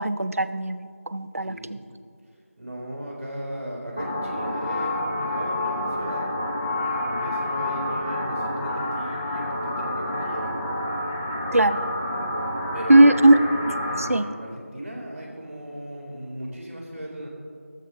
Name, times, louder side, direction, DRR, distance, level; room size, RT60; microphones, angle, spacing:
voice 1, 0.0-1.8 11.5-11.8 12.9-13.4 14.0-14.2, right 1 dB, 75° right, 12 dB, 0.5 m, -18 dB
voice 2, 1.4-1.8 2.6-6.3 6.9-10.5 12.7-17.3, equal, 40° right, -2 dB, 1.7 m, -36 dB
sound 1, 4.0-14.1, left 1 dB, 15° left, 0.4 m, -29 dB
15.5 x 7.4 x 3.2 m, 2.3 s
figure-of-eight pair, 175°, 8 cm